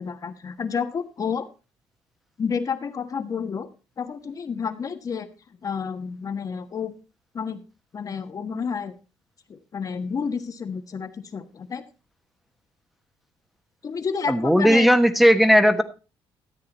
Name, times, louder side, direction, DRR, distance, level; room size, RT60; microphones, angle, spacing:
voice 1, 0.0-1.5 2.4-3.7 4.0-5.3 5.6-6.9 7.3-7.6 7.9-8.9 9.5-11.8 13.8-14.9, left 6 dB, 40° left, 9 dB, 1.4 m, -30 dB
voice 2, 14.3-15.8, equal, ahead, 9 dB, 1.2 m, -16 dB
13.5 x 8.6 x 4.2 m, 0.32 s
cardioid pair, 110°, 9 cm